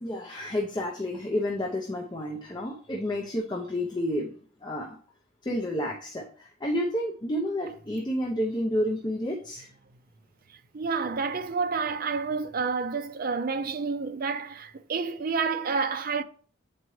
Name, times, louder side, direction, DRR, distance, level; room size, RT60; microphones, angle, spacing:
voice 1, 0.0-4.3 4.6-5.0 5.4-9.7, equal, 25° left, 0.7 m, -30 dB
voice 2, 10.5-16.2, right 5 dB, 50° right, 0.5 m, -29 dB
8.2 x 4.4 x 3.1 m
head